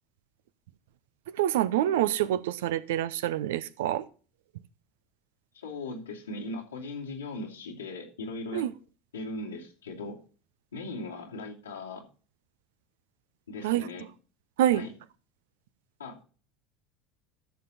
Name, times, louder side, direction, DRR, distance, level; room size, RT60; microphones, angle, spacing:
voice 1, 1.3-4.0 8.5-8.7 13.6-13.9 14.6-14.8, right 12 dB, 65° right, 0.7 m, -26 dB
voice 2, 5.5-8.7 9.1-10.2 10.7-12.1 13.5-14.1 14.7-14.9 16.0-16.2, left 2 dB, 75° left, 2.7 m, -38 dB
14.0 x 6.8 x 4.2 m
figure-of-eight pair, 70°, 0 cm